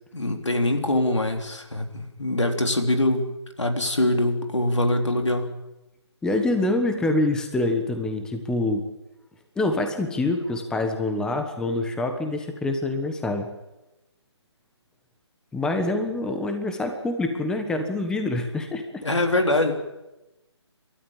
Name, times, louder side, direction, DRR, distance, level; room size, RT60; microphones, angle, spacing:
voice 1, 0.1-3.3 3.6-5.5 19.0-19.7, left 1 dB, 90° left, 5 dB, 3.6 m, -23 dB
voice 2, 6.2-8.8 9.6-13.5 15.5-19.0, left 2 dB, 5° left, 6 dB, 1.4 m, -26 dB
28.5 x 13.0 x 8.8 m, 0.99 s
figure-of-eight pair, 150°, 15 cm